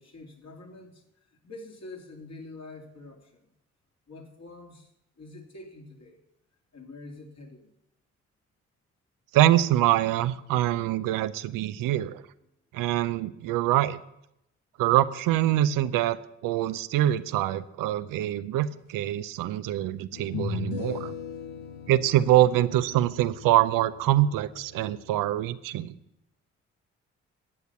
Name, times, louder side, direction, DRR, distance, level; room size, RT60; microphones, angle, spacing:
voice 1, 0.0-3.5 4.1-4.9 5.2-6.2 6.7-7.7, left 2 dB, 50° left, 1 dB, 2.9 m, -46 dB
voice 2, 9.3-12.2 12.7-14.0 14.8-21.1 21.9-25.9, right 13 dB, 75° right, 14 dB, 0.6 m, -24 dB
sound 1, 19.0-19.1 20.1-25.4, left 8 dB, 85° left, 0.8 m, -39 dB
11.0 x 8.0 x 7.1 m, 0.81 s
hypercardioid pair, 40°, 33 cm